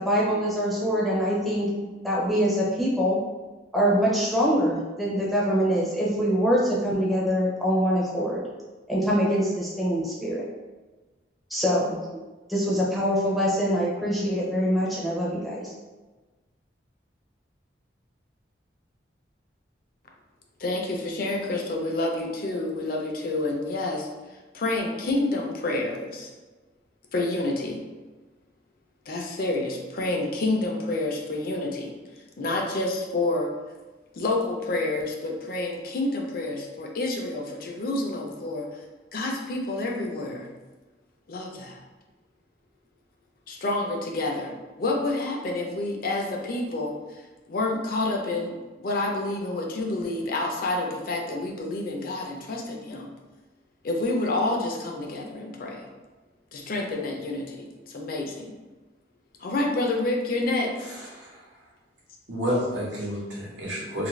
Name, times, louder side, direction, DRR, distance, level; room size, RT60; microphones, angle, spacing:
voice 1, 0.0-3.2 3.7-8.4 8.9-10.4 11.5-12.0 12.5-15.7, equal, ahead, -6 dB, 0.5 m, -24 dB
voice 2, 20.6-24.1 24.5-26.3 27.1-27.8 29.1-32.0 32.4-33.5 34.1-38.8 39.1-40.5 41.3-41.8 43.5-47.2 47.5-53.1 53.8-55.9 56.5-58.5 59.4-60.9, left 2 dB, 50° left, 0 dB, 0.4 m, -28 dB
voice 3, 60.9-61.5 62.3-64.1, equal, 80° right, -6 dB, 1.0 m, -30 dB
2.6 x 2.5 x 3.1 m, 1.2 s
head